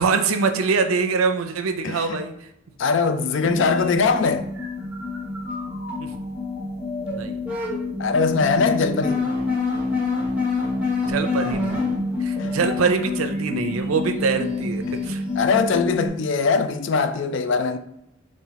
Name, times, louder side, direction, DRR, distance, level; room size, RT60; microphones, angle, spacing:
voice 1, 0.0-2.3 6.0-6.1 7.1-7.4 11.0-11.9 12.2-15.2, right 5 dB, 80° right, 0.5 m, -24 dB
voice 2, 1.8-2.2 2.8-4.5 8.0-9.3 12.4-12.5 14.9-15.0 15.4-17.8, left 4 dB, 60° left, 0.4 m, -21 dB
sound 1, 3.4-16.1, left 3 dB, 5° right, 1.1 m, -27 dB
3.9 x 2.5 x 4.1 m
head